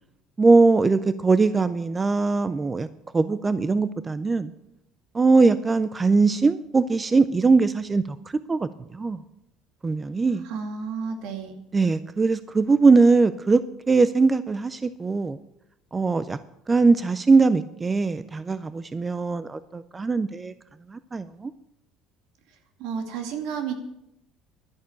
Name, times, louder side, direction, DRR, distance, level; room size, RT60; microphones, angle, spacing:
voice 1, 0.4-2.9 3.1-4.5 5.1-8.2 8.5-9.2 9.8-10.4 11.7-15.4 15.9-16.4 16.7-20.5 20.9-21.5, right 4 dB, 15° right, 14 dB, 0.4 m, -21 dB
voice 2, 10.4-11.6 22.8-23.8, right 6 dB, 70° right, 6 dB, 2.3 m, -31 dB
11.5 x 11.0 x 7.0 m, 0.83 s
cardioid pair, 145°, 0 cm